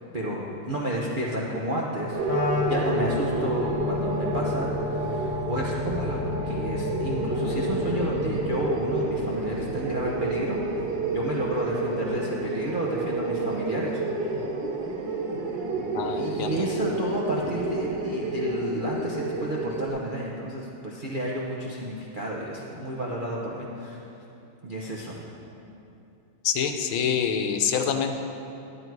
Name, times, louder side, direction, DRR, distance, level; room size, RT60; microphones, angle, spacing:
voice 1, 0.1-2.2 2.6-10.6 11.1-14.3 16.1-24.0 24.6-25.3, right 1 dB, 50° right, -4 dB, 0.6 m, -31 dB
sound 1, 2.1-19.9, right 2 dB, 65° right, 1.8 m, -29 dB
Wind instrument woodwind instrument, 2.2-8.6, left 7 dB, 55° left, 1.4 m, -32 dB
voice 2, 15.9-16.6 26.4-28.2, left 7 dB, 85° left, 5 dB, 1.6 m, -26 dB
11.5 x 8.9 x 4.6 m, 2.8 s
omnidirectional pair, 2.2 m